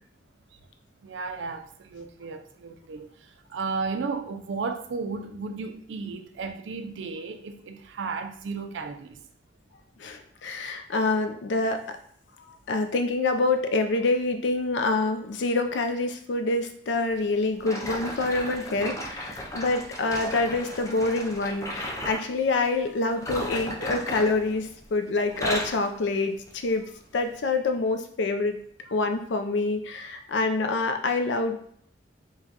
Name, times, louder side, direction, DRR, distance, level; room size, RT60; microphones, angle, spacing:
voice 1, 1.0-9.3 21.0-21.1, right 4 dB, 80° right, 0.4 m, -34 dB
voice 2, 10.0-11.8 12.5-26.9 27.1-28.6 28.9-31.6, left 3 dB, 75° left, 0.4 m, -26 dB
sound 1, 17.6-22.3 23.1-24.9 25.2-25.9 26.5-26.7 27.3-27.4, equal, 20° left, 0.4 m, -35 dB
4.7 x 2.2 x 2.8 m
head